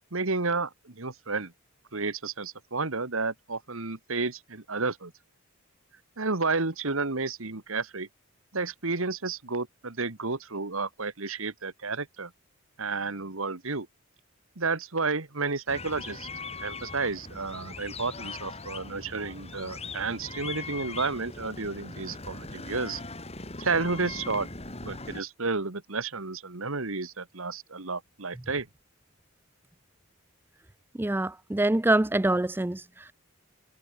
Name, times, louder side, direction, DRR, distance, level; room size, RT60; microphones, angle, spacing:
voice 1, 0.1-1.5 1.9-5.1 6.2-8.1 8.5-12.3 12.8-13.9 14.6-16.3 16.6-23.0 23.6-24.5 24.8-28.7, right 4 dB, 65° right, 1.7 m, -31 dB
sound 1, 15.7-25.2, left 3 dB, 30° left, 5.6 m, -40 dB
voice 2, 31.0-33.1, right 1 dB, 10° right, 0.4 m, -25 dB
head